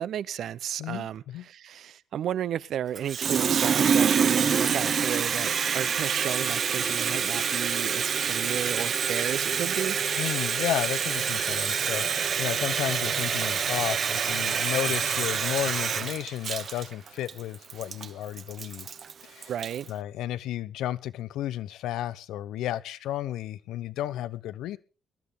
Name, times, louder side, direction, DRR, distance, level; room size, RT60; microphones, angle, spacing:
voice 1, 0.0-10.0 19.5-19.9, right 10 dB, 70° right, 0.6 m, -33 dB
voice 2, 0.8-1.5 10.2-18.9 19.2-19.5 19.9-24.8, left 12 dB, 85° left, 0.7 m, -33 dB
Water tap faucet, 2.9-19.9, right 7 dB, 55° right, 1.1 m, -27 dB
21.0 x 11.5 x 3.6 m
cardioid pair, 90°, 0 cm